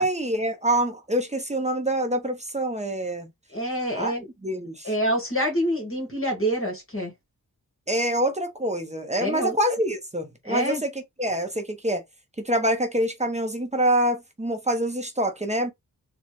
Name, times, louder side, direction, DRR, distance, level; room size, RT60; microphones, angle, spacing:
voice 1, 0.0-3.3 3.9-4.9 7.9-10.9 11.2-12.0 12.4-15.7, right 1 dB, 20° right, 0.9 m, -26 dB
voice 2, 3.5-4.3 4.8-7.1 9.2-9.6 10.4-10.8, equal, 35° left, 1.9 m, -26 dB
4.0 x 2.4 x 3.2 m
wide cardioid pair, 80°, 35 cm